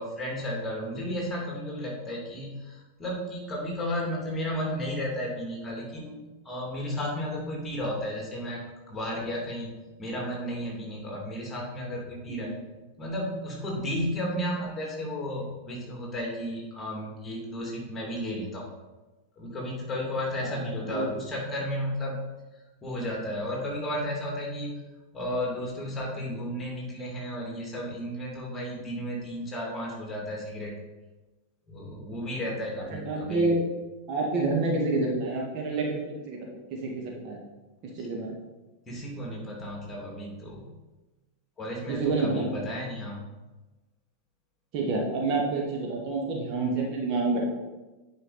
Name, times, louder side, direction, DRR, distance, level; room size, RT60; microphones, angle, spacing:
voice 1, 0.0-8.6 8.9-9.7 10.0-12.5 13.0-18.7 19.4-22.2 22.8-24.7 25.1-30.8 31.7-33.4 38.0-38.1 38.9-40.6 41.6-43.2, equal, 15° left, -2 dB, 2.6 m, -33 dB
voice 2, 20.4-21.1 28.8-28.9 32.9-33.6 34.1-36.4 36.8-37.4 37.9-38.3 41.9-42.5 44.7-47.5, right 3 dB, 40° right, -1 dB, 1.7 m, -28 dB
9.5 x 5.2 x 4.1 m, 1.1 s
figure-of-eight pair, 90°, 0 cm